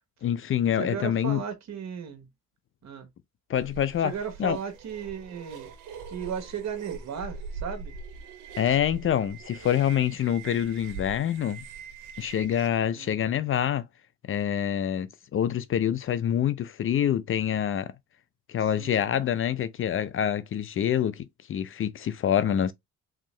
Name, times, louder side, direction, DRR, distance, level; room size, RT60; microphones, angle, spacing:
voice 1, 0.2-1.4 3.5-4.1 4.4-4.6 8.6-11.6 12.2-13.9 14.3-17.9 18.5-22.7, left 9 dB, 45° left, 0.4 m, -26 dB
voice 2, 0.7-2.3 2.8-3.1 4.0-5.7 6.1-7.9 12.9-13.4 18.8-19.1, right 7 dB, 60° right, 1.2 m, -36 dB
sound 1, 3.6-12.7, right 5 dB, 85° right, 0.7 m, -42 dB
3.6 x 2.8 x 3.0 m
cardioid pair, 90°, 30 cm